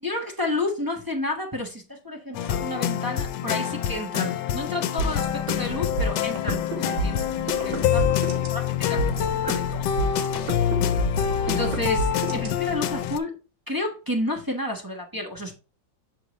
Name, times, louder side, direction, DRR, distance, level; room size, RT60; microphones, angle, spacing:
voice 1, 0.0-10.0 10.3-10.8 11.5-13.3 13.7-15.6, left 2 dB, 15° right, 0.8 m, -31 dB
sound 1, 2.3-13.2, left 10 dB, 75° left, 1.2 m, -26 dB
sound 2, 5.0-13.0, right 2 dB, 90° right, 2.1 m, -30 dB
6.7 x 5.5 x 3.1 m
omnidirectional pair, 2.0 m